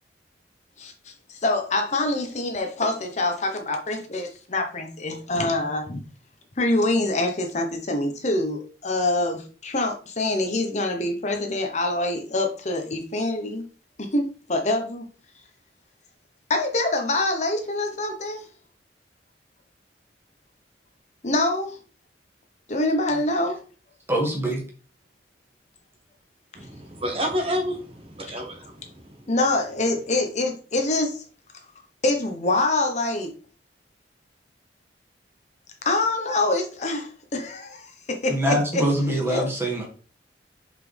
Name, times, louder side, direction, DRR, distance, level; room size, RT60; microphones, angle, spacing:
voice 1, 0.8-6.0 6.6-13.6 14.0-15.0 16.5-18.4 21.2-21.8 22.7-23.6 29.3-31.2 32.0-33.3 35.8-38.8 39.3-39.5, left 2 dB, 40° left, 0.9 m, -25 dB
voice 2, 24.1-24.6 38.3-39.8, right 1 dB, 15° right, 2.0 m, -24 dB
voice 3, 26.5-29.3, equal, 35° right, 1.2 m, -30 dB
5.8 x 5.0 x 3.3 m
head